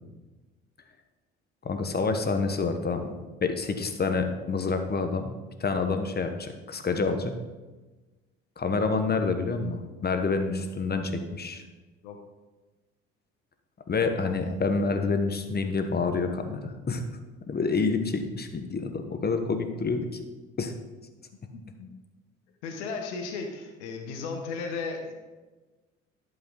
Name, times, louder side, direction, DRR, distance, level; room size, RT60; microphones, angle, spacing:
voice 1, 1.6-3.1 3.4-5.3 5.6-7.3 8.6-11.6 13.9-17.0 17.5-20.2 20.6-20.7, left 4 dB, 30° left, 7 dB, 1.1 m, -28 dB
voice 2, 21.5-21.9 22.6-25.1, left 4 dB, 80° left, 3 dB, 1.0 m, -35 dB
10.5 x 5.5 x 3.9 m, 1.2 s
hypercardioid pair, 55°, 35 cm